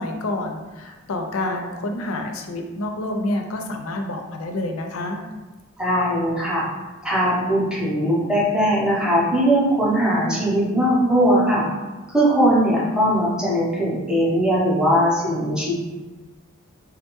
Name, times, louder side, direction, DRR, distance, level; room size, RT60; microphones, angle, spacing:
voice 1, 0.0-5.2, left 1 dB, 80° left, 4 dB, 0.4 m, -28 dB
voice 2, 5.8-6.7 7.0-11.7 12.1-15.7, equal, 5° right, -6 dB, 0.6 m, -20 dB
3.5 x 2.2 x 3.0 m, 1.2 s
head